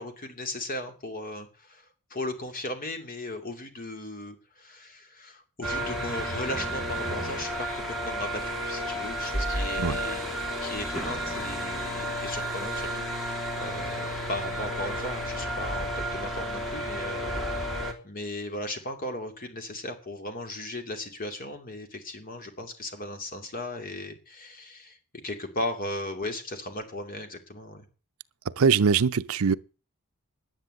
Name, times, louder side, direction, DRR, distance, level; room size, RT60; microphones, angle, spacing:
voice 1, 0.0-17.3 18.0-25.0 25.2-27.9, left 1 dB, 40° left, 2.6 m, -37 dB
sound 1, 5.6-17.9, equal, ahead, 2.6 m, -32 dB
voice 2, 28.6-29.5, right 6 dB, 70° right, 0.6 m, -22 dB
10.5 x 10.0 x 7.9 m
head